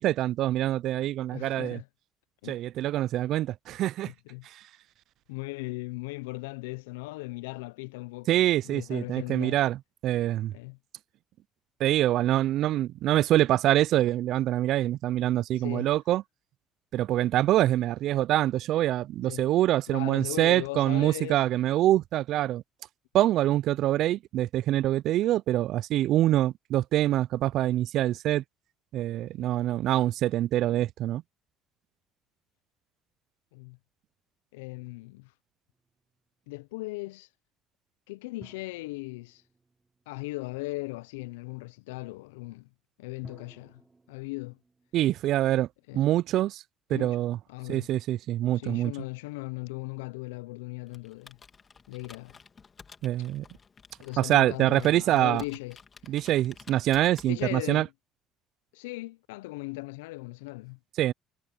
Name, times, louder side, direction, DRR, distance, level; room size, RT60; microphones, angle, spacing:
voice 1, 0.0-1.8 2.5-4.1 4.4-4.6 8.3-10.5 11.8-16.2 16.9-22.6 23.1-28.4 28.9-31.2 44.9-45.7 45.9-46.6 46.9-47.4 47.7-48.9 53.0-53.4 54.2-55.4 56.1-57.9 61.0-61.1, right 13 dB, 65° right, 0.4 m, -25 dB
voice 2, 1.3-1.9 2.4-2.6 4.1-4.5 5.3-9.6 10.5-10.8 15.6-15.9 19.3-19.5 19.9-21.4 29.4-29.5 33.5-33.8 34.5-35.3 36.5-37.3 38.1-39.4 40.1-42.7 43.0-43.8 44.1-44.6 45.9-46.1 46.9-47.2 47.5-47.9 48.6-51.4 51.9-52.4 54.0-55.8 57.2-57.9 58.7-60.8, left 23 dB, 85° left, 0.5 m, -38 dB
sound 1, 35.7-36.6 38.4-40.8 43.2-46.3, right 3 dB, 20° right, 5.1 m, -58 dB
Computer keyboard, 50.9-57.7, left 5 dB, 35° left, 2.5 m, -53 dB
hypercardioid pair, 70°, 0 cm